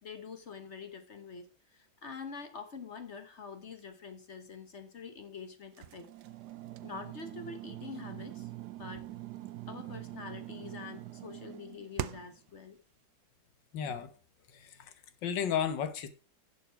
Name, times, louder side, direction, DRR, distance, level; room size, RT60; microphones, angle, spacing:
voice 1, 0.0-6.1 6.8-8.5 8.8-9.0 9.7-12.8, left 5 dB, 45° left, 1.2 m, -46 dB
sound 1, 5.8-12.4, right 14 dB, 70° right, 1.2 m, -43 dB
voice 2, 13.7-14.1 14.5-14.9 15.2-16.1, left 8 dB, 80° left, 1.8 m, -33 dB
11.5 x 6.6 x 4.5 m
omnidirectional pair, 1.9 m